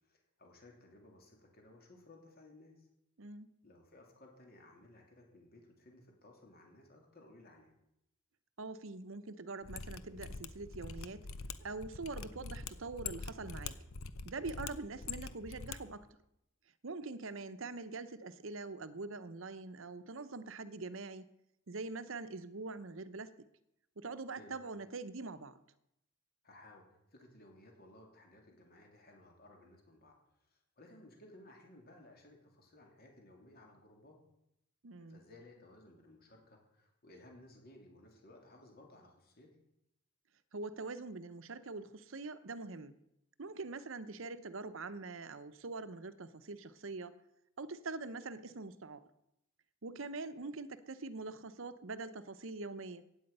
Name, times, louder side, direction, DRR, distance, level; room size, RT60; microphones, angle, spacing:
voice 1, 0.0-2.9 3.6-7.7 24.4-24.6 26.4-34.2 35.1-39.6, left 1 dB, 45° left, 1 dB, 3.1 m, -59 dB
voice 2, 3.2-3.5 8.6-11.3 11.6-13.8 14.2-16.1 16.8-21.2 21.7-23.3 24.0-25.6 34.8-35.2 40.5-43.0 43.4-47.2 47.6-49.0 49.8-53.0, right 3 dB, 65° right, 12 dB, 0.8 m, -44 dB
Mechanisms, 9.6-16.0, left 5 dB, 75° left, 0.8 m, -44 dB
16.0 x 9.6 x 5.5 m, 0.82 s
head